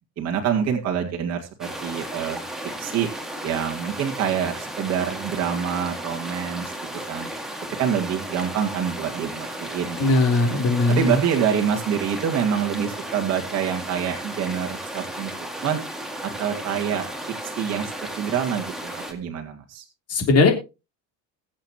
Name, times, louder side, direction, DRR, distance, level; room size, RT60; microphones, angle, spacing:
voice 1, 0.2-2.4 2.8-3.1 3.4-6.7 7.1-7.3 7.8-10.4 10.9-15.3 15.6-15.8 16.2-17.1 17.4-19.8, right 8 dB, 45° right, 2 dB, 2.1 m, -26 dB
sound 1, 1.6-19.1, right 1 dB, ahead, 2.1 m, -34 dB
voice 2, 10.0-11.2 20.1-20.5, left 3 dB, 40° left, 4 dB, 3.4 m, -19 dB
22.0 x 7.4 x 3.0 m, 0.28 s
cardioid pair, 140°, 37 cm